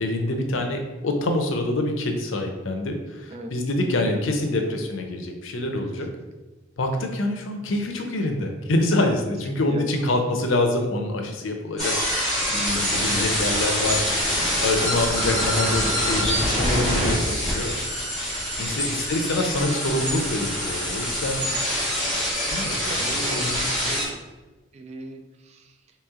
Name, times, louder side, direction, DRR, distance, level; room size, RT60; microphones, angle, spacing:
voice 1, 0.0-6.1 6.8-11.9 12.5-14.0 14.6-17.7 18.6-21.4 22.5-22.8 23.1-23.6, left 2 dB, 85° left, 4 dB, 0.6 m, -26 dB
sound 1, 11.8-24.1, equal, 5° left, 1.2 m, -25 dB
voice 2, 12.7-13.3 18.7-18.8 22.6-24.2 24.7-25.7, right 2 dB, 35° right, 5 dB, 0.3 m, -38 dB
3.0 x 2.9 x 3.6 m, 1.2 s
head